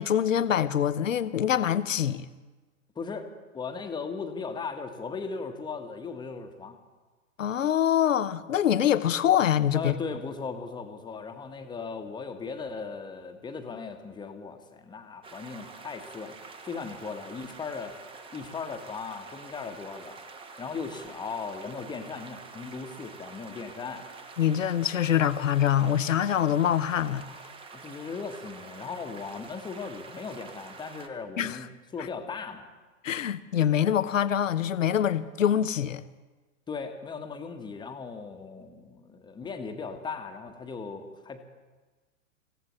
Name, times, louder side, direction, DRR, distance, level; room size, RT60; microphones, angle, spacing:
voice 1, 0.0-2.3 7.4-9.9 24.4-27.2 31.4-31.6 33.0-36.0, left 10 dB, 65° left, 0.9 m, -24 dB
voice 2, 2.9-6.8 9.7-16.4 16.6-18.0 18.3-20.2 20.6-24.1 27.7-32.7 36.7-41.4, left 5 dB, 10° left, 1.3 m, -37 dB
sound 1, 15.2-31.1, right 4 dB, 15° right, 1.1 m, -47 dB
25.5 x 16.0 x 3.1 m
figure-of-eight pair, 105°, 41 cm